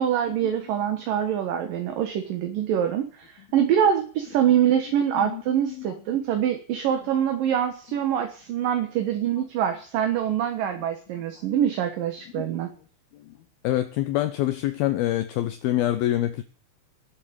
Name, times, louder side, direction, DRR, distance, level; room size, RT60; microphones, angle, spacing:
voice 1, 0.0-12.7, right 9 dB, 65° right, 2.7 m, -24 dB
voice 2, 13.6-16.4, left 14 dB, 75° left, 2.4 m, -26 dB
19.0 x 7.6 x 8.8 m
omnidirectional pair, 5.0 m